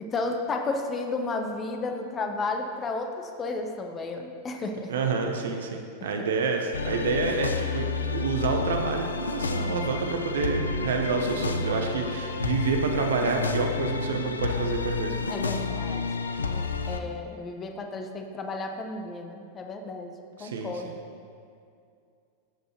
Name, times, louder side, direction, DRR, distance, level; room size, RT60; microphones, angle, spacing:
voice 1, 0.0-4.9 6.2-6.3 15.3-16.0 16.4-20.1 20.4-21.0, left 3 dB, 25° left, 4 dB, 0.9 m, -33 dB
voice 2, 4.9-15.2 20.4-20.9, right 4 dB, 60° right, 3 dB, 1.0 m, -28 dB
sound 1, 6.7-17.0, left 4 dB, 75° left, 0.5 m, -30 dB
13.0 x 7.9 x 3.0 m, 2.4 s
figure-of-eight pair, 90°, 0 cm